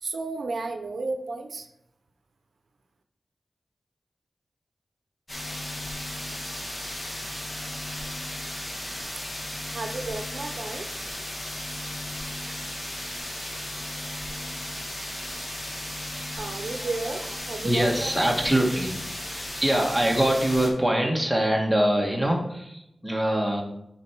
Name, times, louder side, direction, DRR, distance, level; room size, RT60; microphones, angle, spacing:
voice 1, 0.0-1.7 9.6-10.9 16.4-18.5, right 3 dB, 75° right, 5 dB, 0.7 m, -33 dB
sound 1, 5.3-20.7, left 1 dB, 30° left, 1.8 m, -35 dB
voice 2, 17.6-18.9 19.2-23.6, right 1 dB, ahead, -1 dB, 1.6 m, -24 dB
7.2 x 4.7 x 4.5 m, 0.82 s
wide cardioid pair, 90°, 0 cm